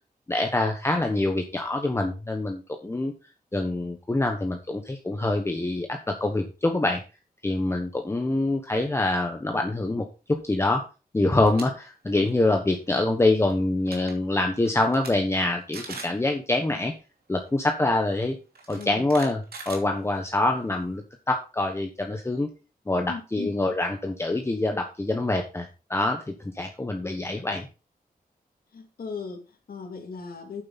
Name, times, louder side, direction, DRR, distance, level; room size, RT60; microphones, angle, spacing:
voice 1, 0.3-3.1 3.5-7.0 7.4-10.8 11.1-16.9 17.3-18.4 18.7-22.5 22.9-27.7, left 2 dB, 15° left, 1.1 m, -25 dB
sound 1, 11.3-11.6 12.1-12.3 13.5-13.6 13.8-14.1 14.6-15.1 15.4-15.5 15.7-16.2 17.4-17.5 18.5-20.4, right 4 dB, 90° right, 2.8 m, -40 dB
voice 2, 23.1-23.5 28.7-30.6, left 5 dB, 75° left, 2.4 m, -37 dB
9.1 x 7.9 x 4.1 m
wide cardioid pair, 150°, 15 cm